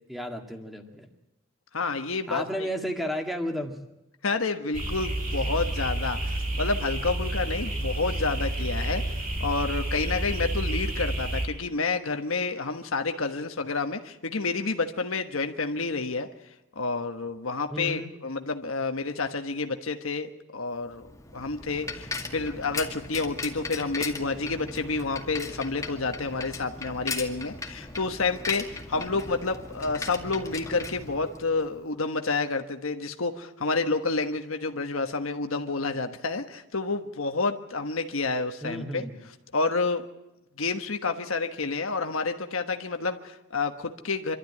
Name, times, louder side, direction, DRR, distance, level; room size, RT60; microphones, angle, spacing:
voice 1, 0.1-1.1 2.3-3.8 17.7-18.1 28.9-29.3 38.6-39.2, equal, ahead, 4 dB, 2.0 m, -33 dB
voice 2, 1.7-2.7 4.2-16.3 16.7-39.0 39.5-40.0 40.6-44.4, left 3 dB, 85° left, 6 dB, 1.4 m, -29 dB
sound 1, 4.7-11.5, right 1 dB, 45° right, 4.6 m, -30 dB
Bicycle, 20.9-31.7, left 3 dB, 15° left, 2.1 m, -38 dB
26.0 x 13.0 x 9.8 m, 0.95 s
head